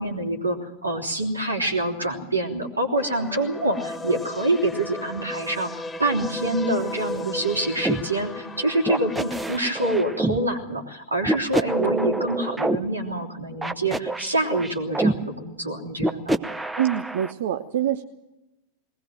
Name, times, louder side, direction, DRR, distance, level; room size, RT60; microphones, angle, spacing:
voice 1, 0.0-5.7 6.0-16.3, right 1 dB, 80° right, 1 dB, 3.2 m, -26 dB
sound 1, 3.0-9.5, left 2 dB, 10° left, 1.7 m, -35 dB
sound 2, 7.8-8.0 8.9-10.4 11.2-12.8 13.6-15.1 16.0-17.3, right 2 dB, 10° right, 1.0 m, -26 dB
voice 2, 16.8-18.0, right 10 dB, 55° right, 8 dB, 0.8 m, -25 dB
21.0 x 19.0 x 7.6 m, 0.97 s
figure-of-eight pair, 90°, 0 cm